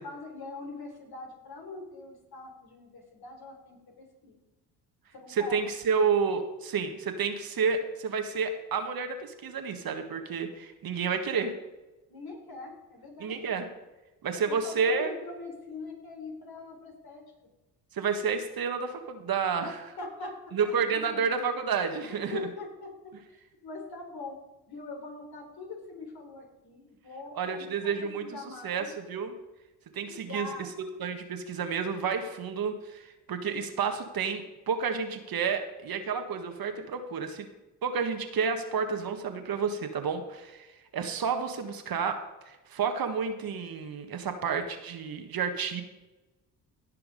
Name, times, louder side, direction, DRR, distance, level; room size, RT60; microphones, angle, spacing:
voice 1, 0.0-4.4 5.1-5.6 12.1-13.4 14.5-17.2 19.6-19.7 20.0-20.4 20.9-21.3 22.1-23.1 23.6-24.4 24.7-28.9 30.1-30.7, left 3 dB, 55° left, 1 dB, 3.8 m, -42 dB
voice 2, 5.3-11.5 13.2-13.7 14.2-15.1 17.9-19.8 20.5-22.5 27.3-29.3 29.9-30.7 31.0-37.5 37.8-40.7 40.9-42.2 42.5-45.8, right 6 dB, 55° right, 6 dB, 1.6 m, -30 dB
16.0 x 5.7 x 5.3 m, 1.1 s
supercardioid pair, 60°, 43 cm